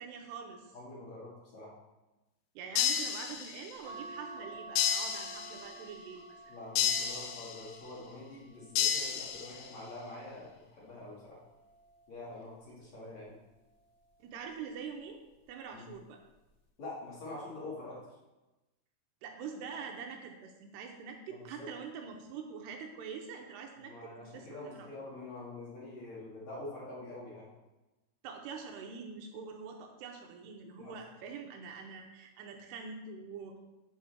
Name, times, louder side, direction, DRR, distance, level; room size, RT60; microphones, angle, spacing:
voice 1, 0.0-0.7 2.6-6.5 14.2-15.2 15.5-16.2 19.2-24.9 28.2-33.6, right 6 dB, 80° right, 3 dB, 2.7 m, -45 dB
voice 2, 0.7-1.7 6.5-11.4 12.1-13.3 15.7-15.9 16.8-18.0 21.3-21.7 23.8-27.5 30.8-30.9, left 2 dB, 45° left, -6 dB, 3.0 m, -45 dB
sound 1, 2.8-3.8 4.8-5.8 6.8-7.8 8.8-9.8, left 8 dB, 80° left, 2.6 m, -32 dB
sound 2, 3.8-10.4 11.1-12.5 13.7-14.2 14.5-14.6, right 2 dB, 5° left, 1.2 m, -51 dB
8.5 x 5.6 x 6.1 m, 1.1 s
omnidirectional pair, 5.0 m